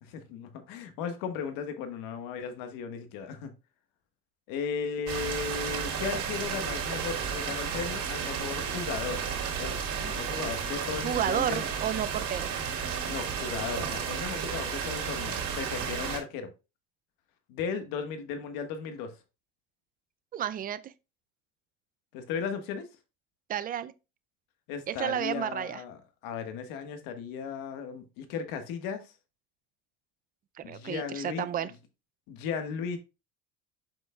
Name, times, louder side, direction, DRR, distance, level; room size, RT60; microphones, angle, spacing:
voice 1, 0.0-3.5 4.5-9.2 9.6-11.7 13.1-16.5 17.5-19.1 22.1-22.9 24.7-29.1 30.6-31.7 32.3-33.0, left 6 dB, 70° left, 1.4 m, -36 dB
sound 1, 5.1-16.2, right 7 dB, 60° right, 3.3 m, -33 dB
voice 2, 11.0-12.5 20.3-20.9 23.5-23.9 24.9-25.8 30.7-31.7, right 10 dB, 25° right, 0.4 m, -31 dB
7.5 x 5.4 x 2.3 m
cardioid pair, 130°, 36 cm